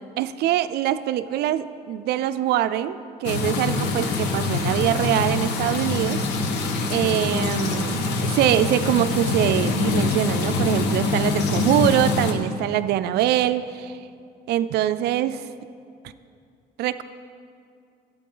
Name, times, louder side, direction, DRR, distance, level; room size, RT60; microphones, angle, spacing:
voice 1, 0.2-6.2 6.9-14.0 14.5-15.4 16.8-17.0, right 12 dB, 75° right, 13 dB, 0.4 m, -23 dB
sound 1, 3.2-12.3, left 3 dB, 85° left, 1.0 m, -24 dB
12.5 x 9.0 x 3.9 m, 2.4 s
cardioid pair, 110°, 17 cm